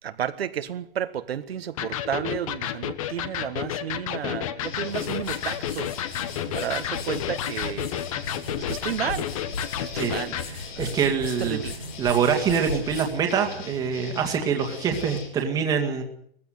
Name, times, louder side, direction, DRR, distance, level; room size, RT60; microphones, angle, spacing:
voice 1, 0.0-5.9 6.5-7.9 8.7-9.3 9.8-10.4 10.7-11.7, right 9 dB, 70° right, 1.5 m, -32 dB
Electric guitar, 1.8-10.5, left 10 dB, 35° left, 1.3 m, -31 dB
sound 1, 4.6-15.3, left 3 dB, 50° left, 8.0 m, -41 dB
sound 2, 4.7-14.0, left 3 dB, 75° left, 5.7 m, -39 dB
voice 2, 10.5-11.6 12.0-16.0, right 7 dB, 10° right, 2.1 m, -25 dB
20.5 x 15.5 x 9.4 m
hypercardioid pair, 170°, 31 cm